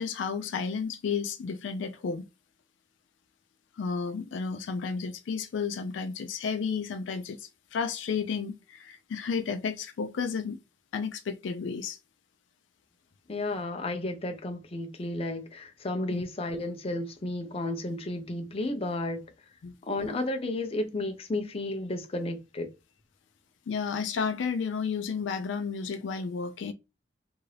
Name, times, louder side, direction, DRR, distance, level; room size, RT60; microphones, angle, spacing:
voice 1, 0.0-2.2 3.8-10.6 10.9-12.0 16.1-16.2 19.6-19.7 23.7-26.7, left 5 dB, 85° left, 0.4 m, -32 dB
voice 2, 13.3-19.2 19.8-22.7, left 2 dB, 30° left, 0.5 m, -32 dB
2.7 x 2.5 x 3.1 m
head